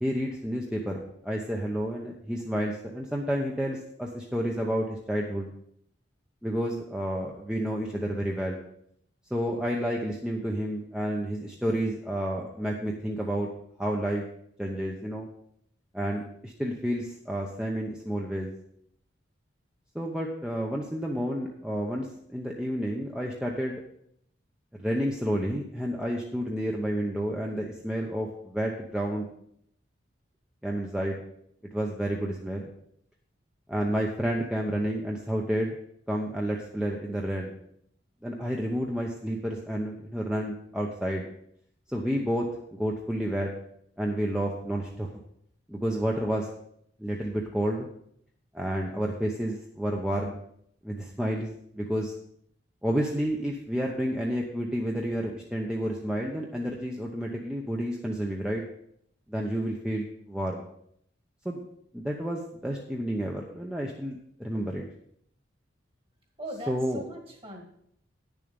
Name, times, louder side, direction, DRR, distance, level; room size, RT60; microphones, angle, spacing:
voice 1, 0.0-5.5 6.4-8.6 9.3-13.5 13.8-14.2 14.6-15.3 15.9-18.5 19.9-23.8 24.8-29.3 30.6-31.2 31.7-32.7 33.7-35.8 36.1-37.5 38.2-41.3 41.9-43.5 44.0-45.1 45.7-46.5 47.0-47.9 48.5-50.4 50.8-52.1 52.8-58.6 59.3-60.6 61.4-61.6 61.9-64.8 66.7-67.0, equal, 5° right, -1 dB, 0.8 m, -30 dB
voice 2, 66.4-67.6, equal, 30° right, 2 dB, 2.0 m, -39 dB
10.0 x 7.0 x 5.2 m, 0.70 s
head